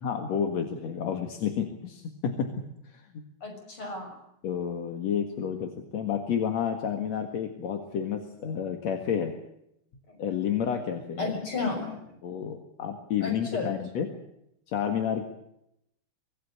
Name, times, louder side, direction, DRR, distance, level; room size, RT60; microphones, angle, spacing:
voice 1, 0.0-2.5 2.8-3.2 4.4-9.3 10.2-11.3 12.2-14.1 14.7-15.2, left 8 dB, 50° left, 5 dB, 2.5 m, -30 dB
voice 2, 3.4-4.2 10.1-10.2 11.2-12.2 13.2-13.7, left 3 dB, 30° left, 4 dB, 7.1 m, -33 dB
25.0 x 18.5 x 8.6 m, 0.79 s
omnidirectional pair, 4.5 m